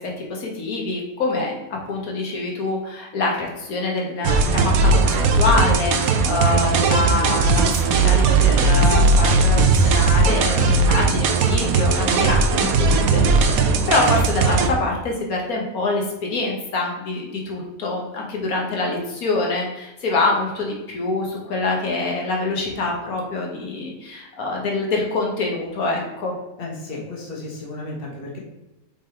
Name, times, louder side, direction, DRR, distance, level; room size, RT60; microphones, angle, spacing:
voice 1, 0.0-1.6 1.9-13.5 13.9-26.3, left 3 dB, 90° left, -1 dB, 1.8 m, -25 dB
sound 1, 4.2-14.7, right 3 dB, 85° right, 1.2 m, -18 dB
voice 2, 26.6-28.4, left 2 dB, 40° left, -2 dB, 1.7 m, -33 dB
6.5 x 3.9 x 4.5 m, 1.0 s
omnidirectional pair, 1.5 m